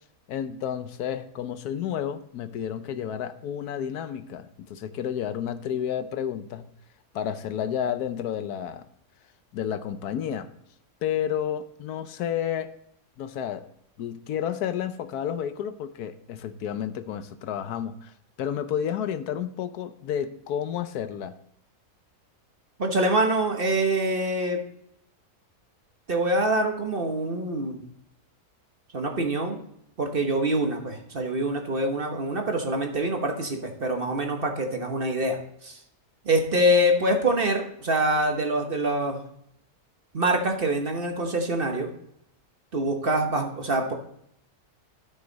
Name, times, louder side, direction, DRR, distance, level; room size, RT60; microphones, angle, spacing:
voice 1, 0.3-6.7 7.1-8.9 9.5-10.5 11.0-12.7 13.2-13.7 14.0-18.1 18.4-21.3, left 9 dB, 85° left, 11 dB, 1.3 m, -31 dB
voice 2, 22.8-24.6 26.1-27.8 28.9-29.6 30.0-35.4 35.6-35.8 36.2-39.2 40.1-41.9 42.7-43.9, right 1 dB, 40° right, 3 dB, 1.3 m, -25 dB
12.5 x 6.2 x 4.0 m, 0.74 s
omnidirectional pair, 1.6 m